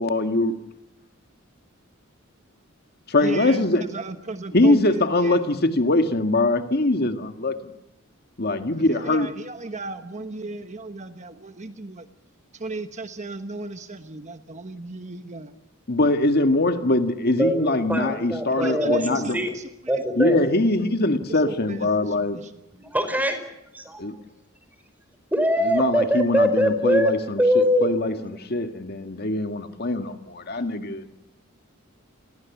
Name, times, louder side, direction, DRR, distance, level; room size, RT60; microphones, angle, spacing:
voice 1, 0.0-0.5 3.1-3.9 4.5-7.7 8.4-9.3 15.9-19.4 20.2-22.4 24.0-24.1 25.6-31.0, left 2 dB, 50° left, 7 dB, 1.8 m, -22 dB
voice 2, 3.2-5.4 8.8-12.1 12.5-15.5 18.6-19.7 21.3-22.5, right 2 dB, 35° right, 8 dB, 1.2 m, -35 dB
voice 3, 17.3-19.6 19.9-20.4 22.7-23.4 23.7-24.0 25.3-27.1 27.4-27.9, equal, 10° right, 8 dB, 5.3 m, -22 dB
29.5 x 22.5 x 7.2 m, 0.90 s
head